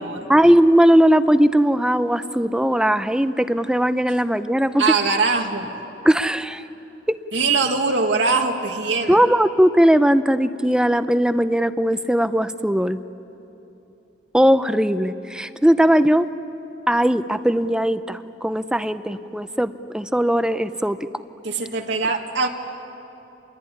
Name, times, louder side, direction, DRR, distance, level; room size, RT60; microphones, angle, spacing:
voice 1, 0.3-4.9 6.0-6.6 7.1-7.2 9.1-13.0 14.3-16.3 16.9-21.0, equal, 5° right, 12 dB, 0.6 m, -18 dB
voice 2, 4.8-5.7 7.3-9.2 21.4-22.5, right 4 dB, 85° right, 2 dB, 1.9 m, -22 dB
27.0 x 21.5 x 9.9 m, 2.9 s
head